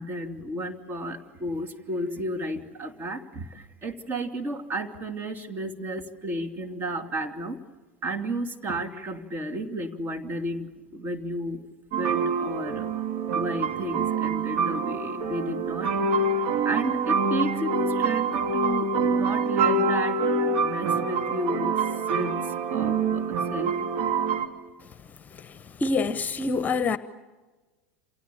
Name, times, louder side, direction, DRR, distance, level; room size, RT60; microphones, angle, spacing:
voice 1, 0.0-7.6 8.0-11.6 12.0-12.9 13.3-21.8 22.1-23.8, right 1 dB, 30° right, 3.0 m, -32 dB
sound 1, 11.9-24.5, right 4 dB, 60° right, 2.4 m, -26 dB
voice 2, 25.8-27.0, left 3 dB, 25° left, 1.1 m, -25 dB
28.5 x 28.0 x 7.1 m
figure-of-eight pair, 80°, 7 cm